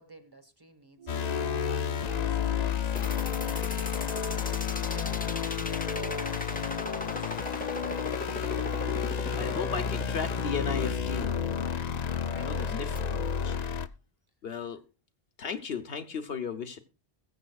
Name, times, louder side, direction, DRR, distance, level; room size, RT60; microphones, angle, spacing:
voice 1, 0.0-1.6 2.1-8.5 12.0-13.3, right 2 dB, 20° right, 1.4 m, -51 dB
sound 1, 1.0-5.8, right 11 dB, 40° right, 0.6 m, -48 dB
sound 2, 1.1-13.9, left 7 dB, 45° left, 0.6 m, -31 dB
sound 3, 3.0-13.0, left 1 dB, 10° left, 0.6 m, -38 dB
voice 2, 9.3-11.3 12.4-13.5 14.4-14.8 15.4-16.8, left 6 dB, 65° left, 1.2 m, -35 dB
21.0 x 7.5 x 2.3 m
omnidirectional pair, 1.1 m